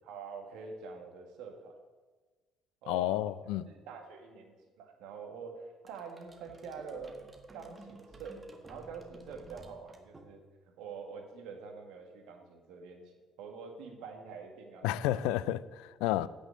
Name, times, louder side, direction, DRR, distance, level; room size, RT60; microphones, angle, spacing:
voice 1, 0.0-1.8 2.8-3.2 3.7-7.1 7.5-8.4 8.7-10.4 10.8-13.1 13.4-15.2, right 5 dB, 65° right, 1.8 m, -46 dB
voice 2, 2.9-3.7 14.8-16.3, left 14 dB, 70° left, 0.4 m, -31 dB
sound 1, 5.9-10.7, right 2 dB, 30° right, 1.6 m, -54 dB
9.4 x 6.4 x 7.9 m
figure-of-eight pair, 50°, 0 cm